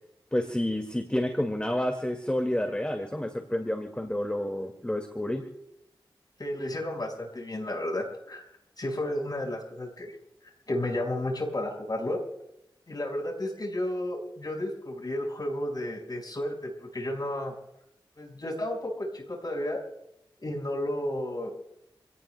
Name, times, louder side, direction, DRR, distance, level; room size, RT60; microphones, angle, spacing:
voice 1, 0.3-5.4, left 1 dB, 10° left, 5 dB, 2.1 m, -29 dB
voice 2, 6.4-8.4 8.8-10.2 10.7-12.2 12.9-17.5 18.2-19.8 20.4-21.5, left 1 dB, 50° left, 0 dB, 5.3 m, -32 dB
27.5 x 17.5 x 2.3 m, 0.85 s
cardioid pair, 50°, 9 cm